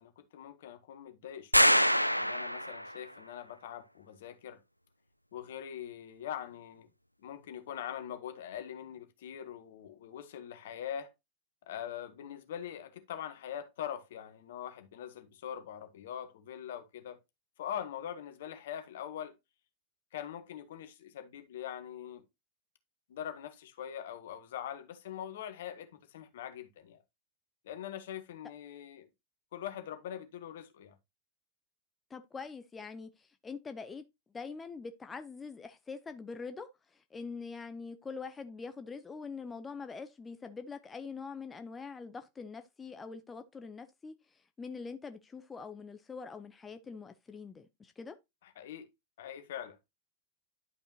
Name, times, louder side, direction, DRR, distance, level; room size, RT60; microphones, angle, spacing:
voice 1, 0.0-1.9 2.1-4.6 5.3-6.9 7.2-11.1 11.7-17.2 17.6-19.3 20.1-22.2 23.1-27.0 27.6-29.1 29.5-30.9 48.4-48.9 49.2-49.8, left 10 dB, 55° left, 1.4 m, -43 dB
sound 1, 1.5-3.0, equal, 90° left, 0.3 m, -25 dB
voice 2, 32.1-34.0 34.3-48.2, left 5 dB, 15° left, 0.6 m, -44 dB
11.0 x 5.3 x 2.8 m
figure-of-eight pair, 90°, 0 cm